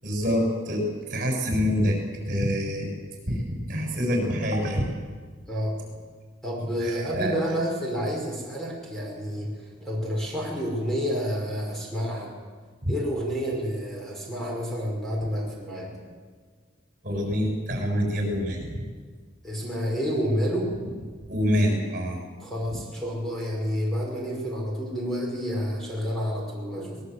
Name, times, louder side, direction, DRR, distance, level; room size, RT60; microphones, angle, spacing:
voice 1, 0.0-2.0 2.2-2.9 3.3-4.9 6.8-7.3 12.8-12.9 17.0-18.7 21.3-22.2, equal, 45° right, 1 dB, 6.7 m, -26 dB
voice 2, 5.5-5.8 6.4-12.3 12.9-16.0 19.4-20.7 22.4-27.0, equal, ahead, -3 dB, 5.5 m, -29 dB
23.5 x 20.5 x 8.2 m, 1.6 s
head